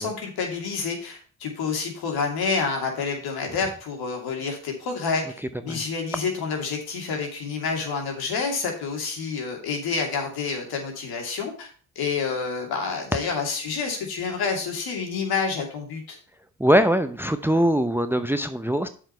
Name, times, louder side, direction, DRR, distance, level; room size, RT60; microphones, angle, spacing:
voice 1, 0.0-11.7 12.0-16.2, left 5 dB, 70° left, 2 dB, 2.7 m, -28 dB
voice 2, 16.6-18.9, equal, 5° right, 10 dB, 0.7 m, -22 dB
7.5 x 5.1 x 5.6 m, 0.41 s
supercardioid pair, 55°, 39 cm